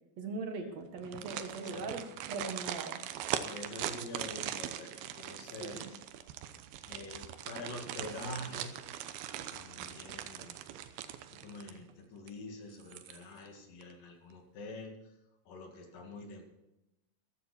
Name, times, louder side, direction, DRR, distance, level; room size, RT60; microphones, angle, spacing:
voice 1, 0.2-3.0 5.6-5.9, right 3 dB, 55° right, 5 dB, 2.3 m, -40 dB
sound 1, 1.0-11.9 12.3-12.4 12.8-13.5 13.8-13.9, right 11 dB, 80° right, 2.8 m, -41 dB
voice 2, 1.4-2.0 3.3-6.0 6.9-8.7 9.5-10.6 11.3-15.1 15.5-16.4, left 2 dB, 65° left, 3 dB, 3.6 m, -46 dB
15.5 x 13.0 x 4.4 m, 0.94 s
omnidirectional pair, 4.4 m